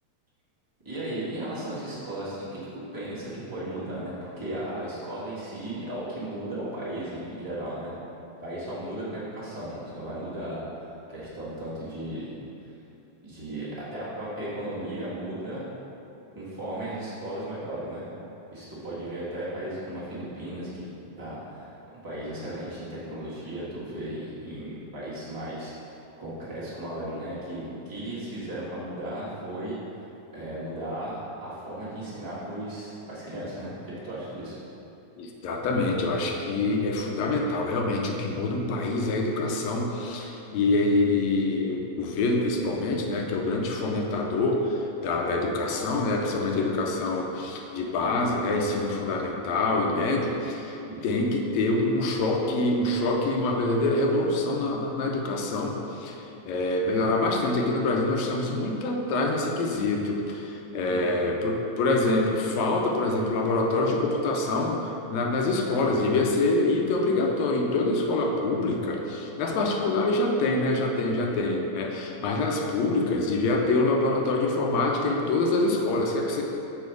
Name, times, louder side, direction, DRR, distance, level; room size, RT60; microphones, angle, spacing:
voice 1, 0.8-7.9 8.4-12.3 13.2-15.6 16.3-18.0 18.5-20.9 21.2-21.7 22.0-25.7 26.2-29.7 30.3-34.5 50.8-51.1 60.8-61.0 69.5-69.7, right 1 dB, 35° right, -10 dB, 0.3 m, -35 dB
voice 2, 35.2-50.8 51.0-56.2 56.5-76.4, left 2 dB, 80° left, 1 dB, 1.8 m, -25 dB
7.2 x 4.7 x 4.6 m, 2.9 s
omnidirectional pair, 3.3 m